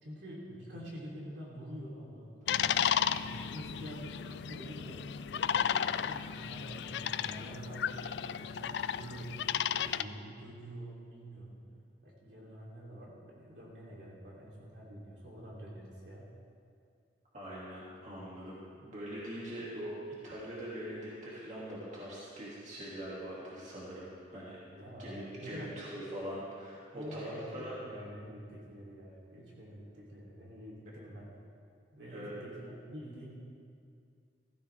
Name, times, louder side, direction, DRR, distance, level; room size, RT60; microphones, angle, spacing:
voice 1, 0.0-2.8 3.1-9.4 9.7-11.6 12.0-16.3 24.7-25.7 26.9-31.3 31.9-33.4, equal, 70° right, -4 dB, 3.3 m, -47 dB
sound 1, 2.5-10.0, left 8 dB, 70° left, 0.3 m, -33 dB
voice 2, 17.3-24.6 25.0-27.8 32.1-32.3, equal, 40° right, -7 dB, 2.6 m, -42 dB
15.5 x 15.0 x 3.5 m, 2.3 s
head